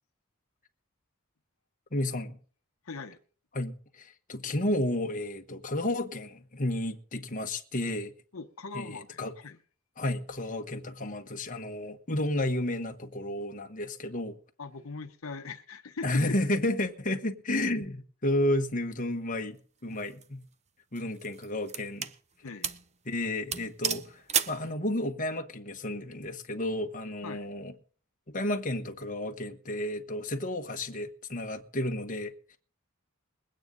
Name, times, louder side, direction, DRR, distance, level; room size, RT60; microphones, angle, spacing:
voice 1, 1.9-2.4 3.5-8.1 8.7-9.3 10.0-14.4 16.0-19.6 19.8-20.4 20.9-22.1 23.0-27.7 28.3-32.6, left 1 dB, 40° left, 1.3 m, -32 dB
voice 2, 2.8-3.2 8.3-9.6 14.6-16.2 22.4-22.7 27.2-27.5, left 4 dB, 75° left, 0.8 m, -41 dB
sound 1, 19.9-20.2 21.0-22.2 22.6-22.9 23.2-23.3 23.5-24.6, right 7 dB, 30° right, 0.7 m, -32 dB
21.5 x 9.1 x 3.9 m
head